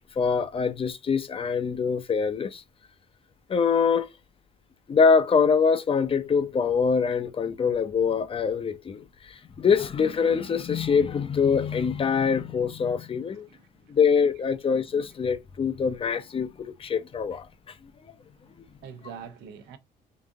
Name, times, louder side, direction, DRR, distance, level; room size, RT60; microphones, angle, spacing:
voice 1, 0.2-2.6 3.5-4.1 4.9-13.5 13.9-17.5, left 6 dB, 35° left, 0.7 m, -24 dB
voice 2, 13.4-13.9 18.8-19.8, right 7 dB, 85° right, 0.9 m, -44 dB
4.0 x 2.6 x 3.6 m
cardioid pair, 110°, 17 cm